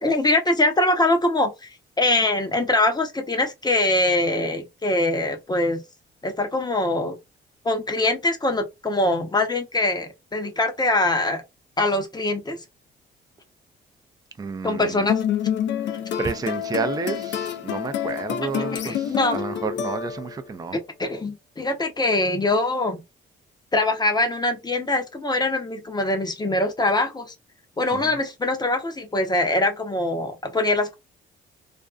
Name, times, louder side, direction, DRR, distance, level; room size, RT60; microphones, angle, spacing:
voice 1, 0.0-1.7 2.0-5.8 6.2-7.2 7.6-11.4 11.8-12.6 14.6-15.2 18.7-19.4 20.7-23.0 23.7-27.3 27.8-31.0, left 2 dB, 20° left, 0.7 m, -23 dB
voice 2, 14.4-15.1 16.2-20.8 27.9-28.1, right 5 dB, 20° right, 0.4 m, -30 dB
sound 1, 15.1-20.5, left 9 dB, 65° left, 0.5 m, -28 dB
2.5 x 2.2 x 2.3 m
cardioid pair, 90°, 20 cm